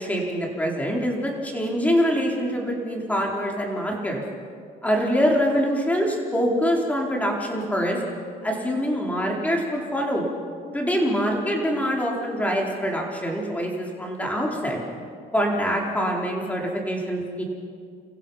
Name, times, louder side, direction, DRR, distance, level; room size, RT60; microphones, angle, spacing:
voice 1, 0.0-4.2 4.8-8.0 8.4-10.2 10.7-14.8 15.3-17.4, equal, 10° left, -1 dB, 4.4 m, -24 dB
29.5 x 15.5 x 5.8 m, 2.2 s
cardioid pair, 110°, 17 cm